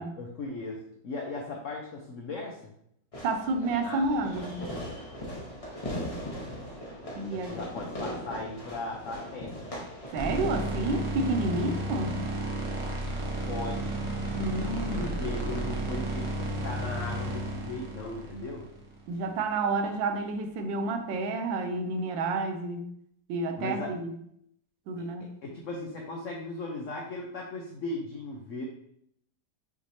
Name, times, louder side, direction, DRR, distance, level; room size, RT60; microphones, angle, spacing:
voice 1, 0.0-2.7 3.8-4.0 7.1-9.7 13.5-14.0 15.0-18.7 23.6-23.9 25.0-28.6, left 2 dB, 65° left, -1 dB, 0.7 m, -37 dB
Fireworks, 3.1-12.1, equal, 25° left, 0.8 m, -40 dB
voice 2, 3.2-4.6 7.2-7.5 10.1-12.3 14.3-15.1 19.1-22.9 23.3-24.1 24.9-25.3, right 3 dB, 80° right, 6 dB, 1.3 m, -30 dB
sound 1, 10.1-19.3, right 1 dB, 40° right, 0.4 m, -33 dB
6.2 x 3.1 x 2.7 m, 0.72 s
omnidirectional pair, 2.1 m